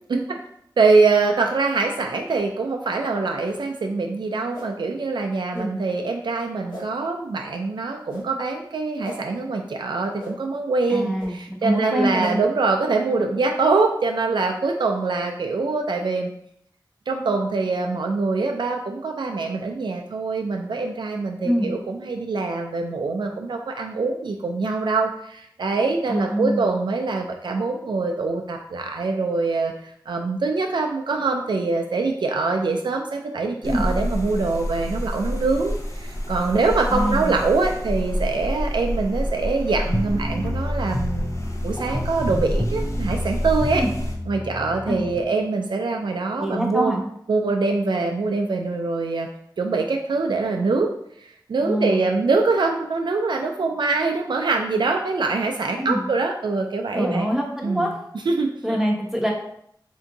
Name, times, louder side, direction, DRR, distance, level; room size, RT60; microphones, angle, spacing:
voice 1, 0.8-16.3 17.1-41.4 41.6-43.8 44.3-47.0 47.3-49.3 49.6-50.9 51.2-57.3 57.6-57.9 58.3-58.8, right 3 dB, 80° right, 2 dB, 0.4 m, -24 dB
sound 1, 2.3-2.5 3.4-3.6 4.5-4.7 5.5-5.6 6.7-6.9 8.1-8.2 9.0-9.2 10.2-10.3 11.2-11.3 12.2-12.3, left 1 dB, 80° left, 1.4 m, -37 dB
voice 2, 10.9-12.4 21.4-21.7 26.1-26.7 33.6-33.9 36.9-37.4 43.8-43.9 44.9-45.0 46.4-47.0 51.6-52.1 55.8-56.0 56.9-57.9 58.6-59.3, equal, 5° right, -1 dB, 1.0 m, -24 dB
sound 2, 33.6-44.1, equal, 40° left, 0.7 m, -28 dB
sound 3, 39.9-45.2, left 1 dB, 10° left, 0.4 m, -29 dB
3.5 x 2.6 x 3.9 m, 0.71 s
cardioid pair, 45°, 8 cm